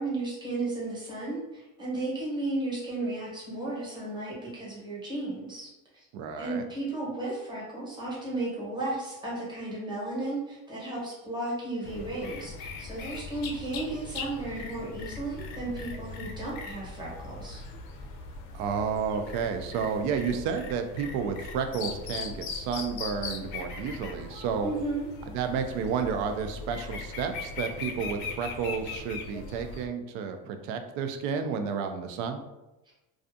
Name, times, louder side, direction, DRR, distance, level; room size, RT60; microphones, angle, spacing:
voice 1, 0.0-6.1 6.4-17.6 24.6-25.1, right 2 dB, 10° right, -6 dB, 0.9 m, -34 dB
voice 2, 6.1-6.6 18.5-24.7 25.3-32.4, right 6 dB, 75° right, 7 dB, 0.5 m, -31 dB
sound 1, 11.8-29.9, left 4 dB, 65° left, 0.5 m, -40 dB
2.4 x 2.4 x 2.6 m, 0.98 s
cardioid pair, 135°, 38 cm